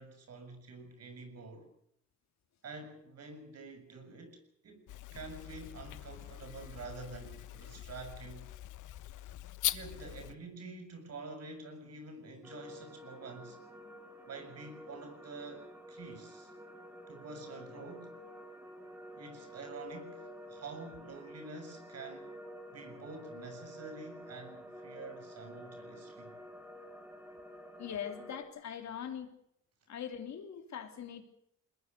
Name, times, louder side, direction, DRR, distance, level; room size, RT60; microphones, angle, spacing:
voice 1, 0.0-1.7 2.6-8.5 9.7-13.6 14.3-16.5 17.1-18.2 19.2-22.4 22.7-26.4, right 3 dB, 55° right, 7 dB, 6.7 m, -48 dB
sound 1, 4.9-10.4, left 14 dB, 80° left, 1.3 m, -41 dB
sound 2, 12.4-28.4, equal, 5° right, 4.2 m, -50 dB
voice 2, 27.8-29.3 29.9-31.2, left 8 dB, 65° left, 6 dB, 3.2 m, -41 dB
22.0 x 20.5 x 6.7 m, 0.71 s
cardioid pair, 90°, 30 cm